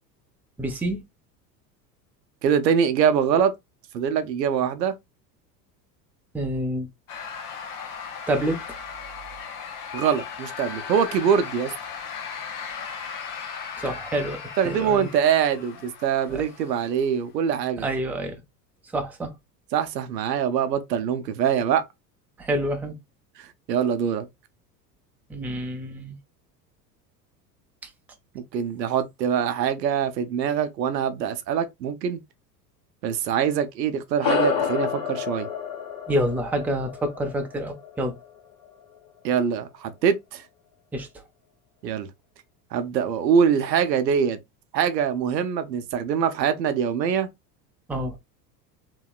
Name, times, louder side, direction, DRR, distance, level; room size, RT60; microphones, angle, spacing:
voice 1, 0.6-1.0 6.3-6.9 8.3-8.6 13.8-15.1 16.3-16.4 17.8-18.4 18.9-19.3 22.4-22.9 25.3-26.2 27.8-27.9 36.1-38.2 40.9-41.1 47.9-48.2, right 1 dB, 5° right, 0.5 m, -27 dB
voice 2, 2.4-3.5 3.9-4.9 9.9-11.7 14.6-17.9 19.7-21.8 23.4-24.3 28.3-32.2 33.0-35.5 39.2-40.4 41.8-42.1 42.7-44.4 44.7-47.3, right 7 dB, 75° right, 0.7 m, -24 dB
sound 1, 7.1-17.2, left 6 dB, 65° left, 0.9 m, -37 dB
sound 2, 34.2-39.0, left 7 dB, 50° left, 1.3 m, -29 dB
3.0 x 2.8 x 2.3 m
figure-of-eight pair, 75°, 50 cm